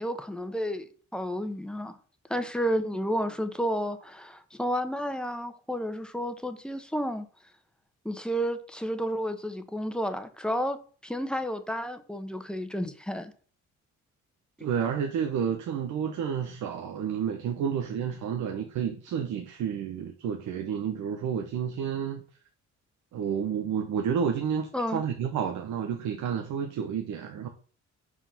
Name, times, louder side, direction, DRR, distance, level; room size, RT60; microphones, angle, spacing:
voice 1, 0.0-2.0 2.3-7.3 8.0-10.8 11.0-13.3 24.7-25.0, equal, 5° left, 1.0 m, -31 dB
voice 2, 14.6-22.2 23.1-27.5, right 7 dB, 80° right, 1.0 m, -30 dB
5.8 x 5.0 x 5.7 m
cardioid pair, 90°, 30 cm